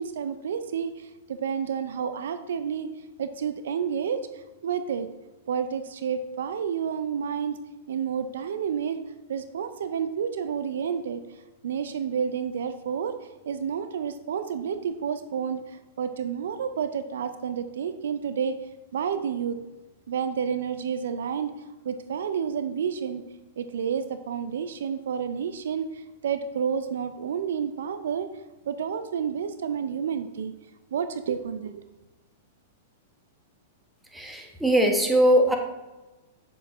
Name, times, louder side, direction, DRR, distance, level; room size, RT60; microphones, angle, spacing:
voice 1, 0.0-2.9 3.2-5.1 5.5-7.6 7.9-9.0 9.3-11.2 11.6-13.1 13.5-18.6 18.9-19.6 20.1-21.5 21.8-23.2 23.6-28.3 28.7-30.5 30.9-31.7, right 7 dB, 70° right, 10 dB, 0.5 m, -30 dB
voice 2, 34.1-35.6, equal, 5° right, 2 dB, 1.3 m, -21 dB
8.1 x 7.1 x 3.1 m, 1.1 s
hypercardioid pair, 110°, 0 cm